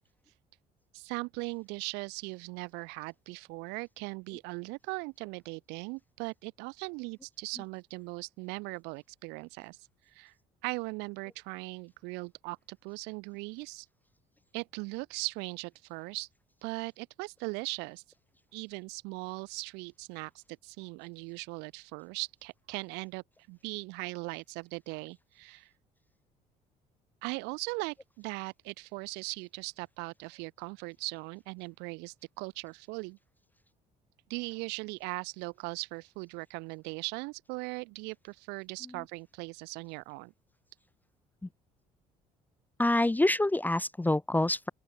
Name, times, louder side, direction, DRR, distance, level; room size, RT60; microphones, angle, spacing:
voice 1, 0.9-9.8 10.1-10.3 10.6-13.9 14.5-16.3 16.6-18.0 18.5-25.7 27.2-33.2 34.3-40.3, right 29 dB, 80° right, 3.8 m, -39 dB
voice 2, 42.8-44.7, left 1 dB, 10° left, 0.7 m, -26 dB
open air
hypercardioid pair, 65°, 17 cm